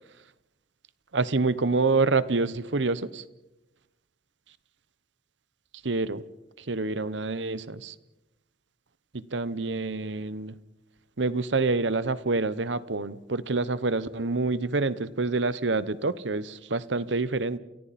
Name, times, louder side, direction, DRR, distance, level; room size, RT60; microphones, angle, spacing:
voice 1, 1.1-3.2 5.8-6.2 6.6-7.9 9.1-10.6 11.2-17.6, right 3 dB, 70° right, 15 dB, 1.1 m, -27 dB
29.5 x 29.0 x 4.3 m, 1.0 s
head